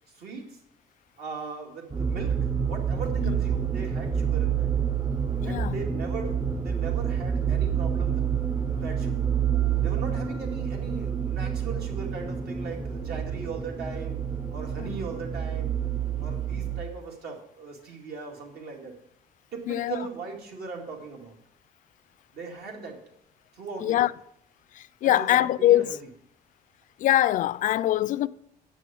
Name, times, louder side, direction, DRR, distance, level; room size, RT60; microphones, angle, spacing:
voice 1, 0.1-0.6 1.2-4.7 5.4-8.3 8.7-9.3 9.8-14.2 14.5-15.8 16.2-18.9 19.5-21.4 22.3-23.0 23.5-24.1 25.0-26.0, right 4 dB, 70° right, 2.2 m, -39 dB
sound 1, 1.9-16.8, right 8 dB, 20° right, 0.6 m, -28 dB
voice 2, 5.4-5.7 14.8-15.0 19.7-20.0 23.8-24.1 24.7-25.9 27.0-28.3, left 13 dB, 50° left, 0.4 m, -23 dB
8.1 x 6.2 x 6.8 m
cardioid pair, 110°, 17 cm